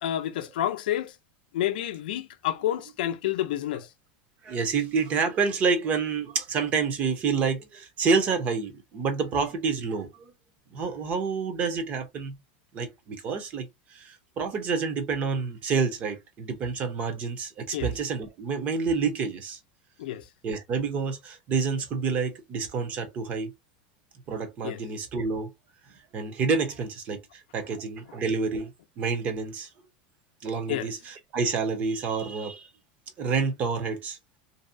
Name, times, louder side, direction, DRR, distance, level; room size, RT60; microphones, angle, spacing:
voice 1, 0.0-1.2 1.5-3.9 17.7-17.9 20.0-20.3 24.6-24.8 30.7-30.9, left 12 dB, 90° left, 0.4 m, -29 dB
voice 2, 4.4-10.3 10.7-12.3 12.7-19.6 20.4-23.5 24.3-25.5 26.1-27.2 27.5-28.7 29.0-29.7 30.4-32.7 33.2-34.2, right 5 dB, 30° right, 0.6 m, -28 dB
2.6 x 2.0 x 2.5 m
supercardioid pair, 160°, 5 cm